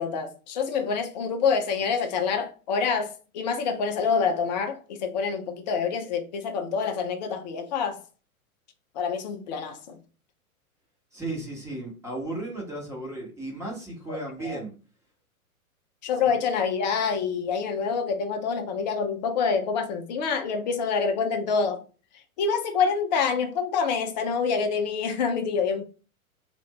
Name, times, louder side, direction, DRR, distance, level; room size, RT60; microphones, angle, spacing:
voice 1, 0.0-8.0 9.0-10.0 14.1-14.6 16.0-21.8 22.4-25.8, left 5 dB, 30° left, 0.6 m, -27 dB
voice 2, 11.1-14.7, right 2 dB, 5° right, 1.2 m, -35 dB
3.4 x 2.6 x 4.0 m
figure-of-eight pair, 105°, 43 cm